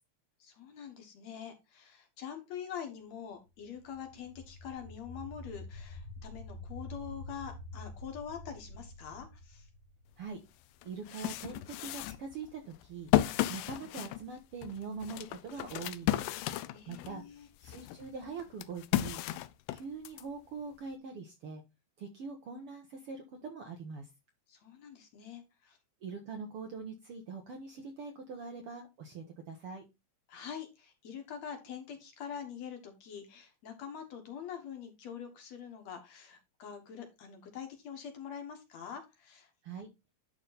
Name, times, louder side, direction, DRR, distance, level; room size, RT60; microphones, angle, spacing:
voice 1, 0.4-9.7 16.7-17.5 24.5-25.8 30.3-39.5, left 8 dB, 60° left, 5 dB, 2.5 m, -45 dB
sound 1, 3.6-10.5, left 2 dB, 45° left, 1.1 m, -47 dB
sound 2, 10.3-10.4 10.8-17.2 17.6-20.2, left 15 dB, 85° left, 2.2 m, -33 dB
voice 2, 10.8-13.1 13.5-16.3 16.9-17.2 17.6-19.2 19.7-21.6 22.0-24.1 26.0-29.8 39.6-39.9, right 5 dB, 65° right, 4 dB, 1.5 m, -43 dB
11.0 x 3.8 x 4.0 m, 0.24 s
omnidirectional pair, 3.7 m